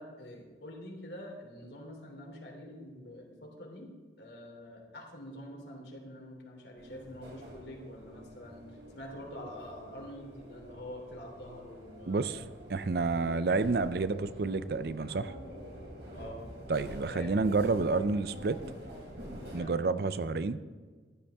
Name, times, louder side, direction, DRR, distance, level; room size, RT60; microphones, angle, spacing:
voice 1, 0.0-3.9 4.2-12.5 16.1-16.4 17.1-17.3 19.4-19.8, equal, 70° left, 0 dB, 2.9 m, -46 dB
sound 1, 6.8-19.6, equal, 75° right, 4.0 m, -47 dB
voice 2, 12.1-12.4 12.7-15.3 16.7-18.6 19.5-20.6, right 3 dB, 55° right, 14 dB, 0.5 m, -29 dB
15.0 x 11.5 x 3.5 m, 1.4 s
head